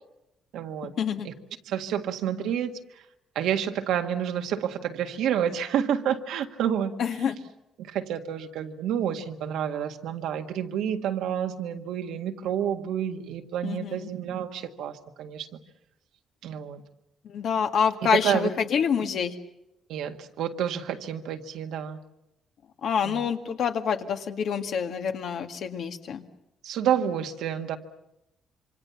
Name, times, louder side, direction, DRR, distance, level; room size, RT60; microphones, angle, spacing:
voice 1, 0.5-0.9 1.2-1.3 1.7-2.8 3.4-6.9 7.9-15.5 16.4-16.8 18.1-18.5 19.9-22.0 23.0-23.2 26.6-27.8, right 9 dB, 85° right, 5 dB, 1.8 m, -29 dB
voice 2, 7.0-7.4 13.6-14.1 17.3-19.3 22.8-26.2, left 7 dB, 70° left, 6 dB, 2.0 m, -27 dB
27.0 x 25.0 x 7.1 m, 0.87 s
cardioid pair, 90°, 0 cm